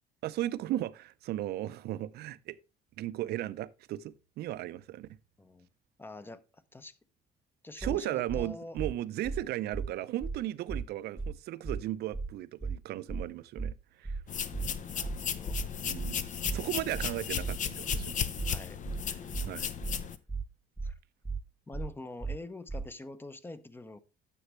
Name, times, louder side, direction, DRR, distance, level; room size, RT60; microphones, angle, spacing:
voice 1, 0.2-2.6 3.0-5.1 7.8-14.2 15.8-16.2 16.5-18.3 19.5-19.7, right 14 dB, 70° right, 0.6 m, -36 dB
voice 2, 6.0-7.0 7.6-8.8 14.3-15.6 16.3-16.4 18.5-18.8 19.5-19.8 20.8-21.0 21.7-24.0, left 2 dB, 15° left, 0.8 m, -46 dB
sound 1, 7.8-8.0 8.3-8.4 8.8-8.9 9.2-9.4 9.7-9.9 10.2-10.4 10.7-10.8 11.2-11.3 11.6-11.8 12.1-12.3 12.6-12.8 13.1-13.2 13.6-13.7 14.0-14.2 14.5-14.7 15.0-15.2 15.5-15.6 16.0-16.1 16.4-16.6 16.9-17.1 17.4-17.6 17.9-18.0 18.4-18.5 18.8-19.0 19.3-19.5 19.8-20.0 20.3-20.4 20.8-20.9 21.2-21.4 21.7-21.9 22.2-22.4 22.7-22.8, right 4 dB, 10° right, 0.4 m, -35 dB
sound 2, 14.3-20.2, left 8 dB, 50° left, 0.8 m, -35 dB
9.8 x 7.1 x 3.1 m
cardioid pair, 110°, 17 cm